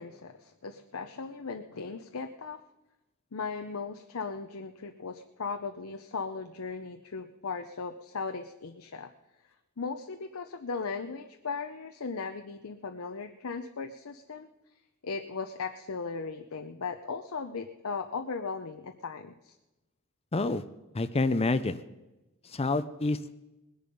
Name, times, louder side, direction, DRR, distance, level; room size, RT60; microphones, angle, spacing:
voice 1, 0.0-2.6 3.3-9.1 9.8-14.5 15.0-19.5, left 4 dB, 85° left, 6 dB, 0.7 m, -37 dB
voice 2, 20.3-20.6 20.9-21.8 22.4-23.3, left 3 dB, 30° left, 13 dB, 0.6 m, -28 dB
20.0 x 10.5 x 5.4 m, 1.0 s
head